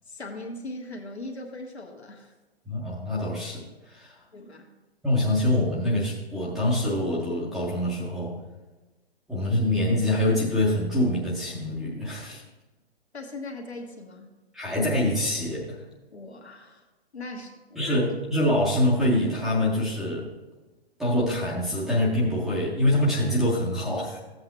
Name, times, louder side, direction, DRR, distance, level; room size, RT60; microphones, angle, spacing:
voice 1, 0.1-2.3 4.3-4.7 13.1-14.3 16.1-16.8 17.1-18.0, left 2 dB, 90° left, 2 dB, 1.4 m, -39 dB
voice 2, 2.7-4.1 5.0-8.3 9.3-12.4 14.5-15.8 17.8-20.3 21.0-24.2, left 1 dB, ahead, -6 dB, 0.4 m, -25 dB
14.0 x 7.8 x 2.9 m, 1.2 s
figure-of-eight pair, 135°, 32 cm